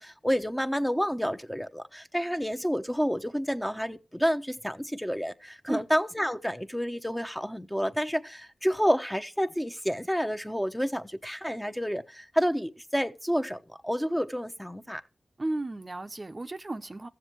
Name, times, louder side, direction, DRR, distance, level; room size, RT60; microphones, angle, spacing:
voice 1, 0.0-15.0, equal, 5° left, 1.0 m, -29 dB
voice 2, 15.4-17.1, right 2 dB, 40° right, 0.9 m, -34 dB
14.5 x 7.4 x 3.1 m
cardioid pair, 45°, 0 cm